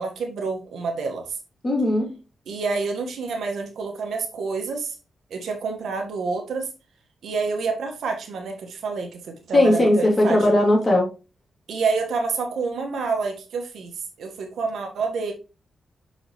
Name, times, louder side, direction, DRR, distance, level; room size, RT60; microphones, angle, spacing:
voice 1, 0.0-1.3 2.5-4.9 5.3-6.7 7.2-10.6 11.7-13.9 14.2-15.3, right 4 dB, 85° right, 1.5 m, -28 dB
voice 2, 1.6-2.1 9.5-11.1, left 1 dB, 30° left, 3.0 m, -18 dB
6.3 x 4.9 x 3.1 m
cardioid pair, 110°, 0 cm